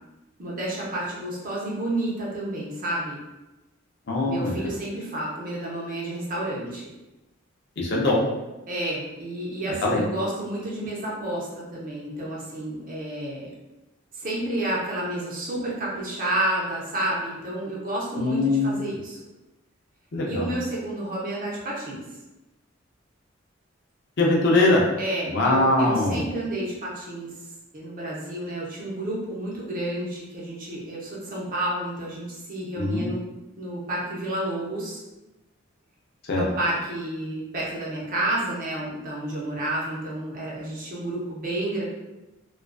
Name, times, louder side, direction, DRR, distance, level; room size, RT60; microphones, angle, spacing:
voice 1, 0.4-3.2 4.3-6.9 8.7-13.5 14.1-19.2 20.3-22.1 25.0-27.3 27.7-33.2 33.6-35.0 36.3-41.8, right 1 dB, 45° right, -5 dB, 0.7 m, -30 dB
voice 2, 4.1-4.7 7.8-8.2 9.8-10.0 18.2-18.8 20.1-20.5 24.2-24.8 25.3-26.2 32.8-33.1 36.3-36.5, left 2 dB, 60° left, -2 dB, 0.5 m, -22 dB
2.4 x 2.3 x 2.2 m, 1.0 s
head